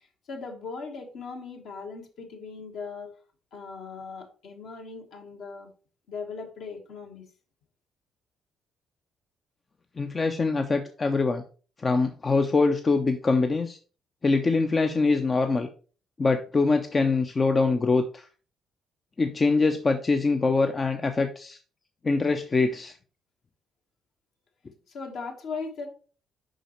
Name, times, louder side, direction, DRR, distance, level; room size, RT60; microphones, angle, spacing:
voice 1, 0.3-3.1 3.5-5.7 6.1-7.2 24.9-25.9, left 4 dB, 60° left, 2 dB, 1.3 m, -38 dB
voice 2, 10.0-11.4 11.8-13.8 14.2-15.7 16.2-18.3 19.2-21.6 22.0-22.9, left 3 dB, 30° left, 6 dB, 0.6 m, -24 dB
6.4 x 5.5 x 3.0 m, 0.38 s
figure-of-eight pair, 45°, 0 cm